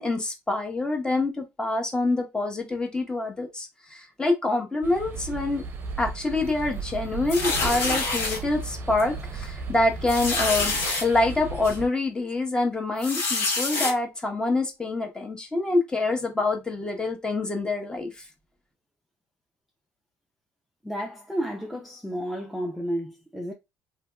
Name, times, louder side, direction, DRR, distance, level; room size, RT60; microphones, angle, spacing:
voice 1, 0.0-5.6 6.0-10.7 11.0-18.1, left 2 dB, 15° left, 0.9 m, -26 dB
sound 1, 4.8-11.9, right 4 dB, 45° right, 0.6 m, -36 dB
sound 2, 7.3-8.4 9.0-9.2 9.4-9.5 10.1-11.0 11.6-11.8 13.0-13.9, left 3 dB, 65° left, 1.7 m, -26 dB
voice 2, 20.8-23.5, equal, ahead, 0.6 m, -31 dB
2.9 x 2.8 x 2.2 m
cardioid pair, 105°, 5 cm